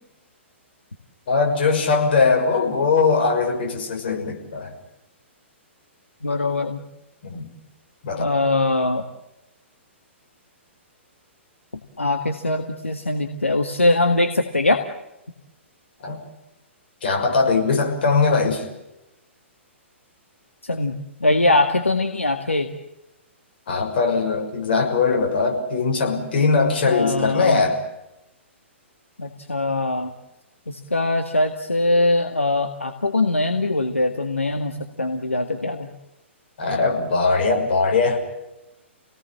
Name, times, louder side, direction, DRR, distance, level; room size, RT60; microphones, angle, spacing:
voice 1, 1.3-4.7 7.2-7.5 8.0-8.3 16.0-16.2 17.0-18.6 23.7-27.8 36.6-38.2, left 4 dB, 50° left, 2 dB, 6.3 m, -20 dB
voice 2, 6.2-6.8 8.2-9.0 12.0-14.8 20.6-22.7 26.9-27.7 29.2-30.1 30.7-35.9, left 2 dB, 80° left, 5 dB, 1.9 m, -22 dB
28.5 x 19.0 x 7.5 m, 0.93 s
figure-of-eight pair, 115°, 7 cm